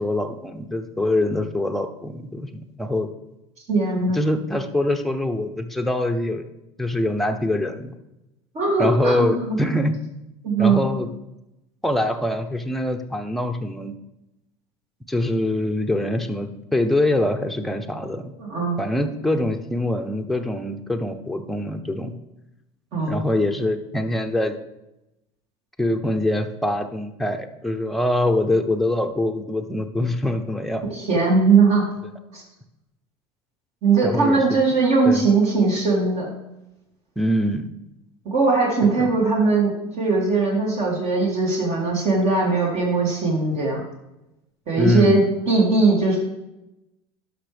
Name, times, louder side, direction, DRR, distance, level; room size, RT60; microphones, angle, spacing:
voice 1, 0.0-3.1 4.1-6.4 6.8-7.9 8.8-9.9 10.6-11.1 11.8-13.9 15.1-18.3 18.8-22.1 23.1-24.6 25.8-30.9 34.0-34.6 35.0-35.3 37.2-37.7 38.8-39.1 44.8-45.3, left 1 dB, ahead, 5 dB, 0.7 m, -24 dB
voice 2, 3.7-4.2 8.5-9.6 10.4-10.8 18.4-18.8 22.9-23.2 30.9-31.9 32.3-32.4 33.8-36.3 38.2-43.8 44.7-46.2, right 3 dB, 50° right, -2 dB, 2.6 m, -20 dB
12.0 x 5.6 x 3.4 m, 0.93 s
supercardioid pair, 100°, 14 cm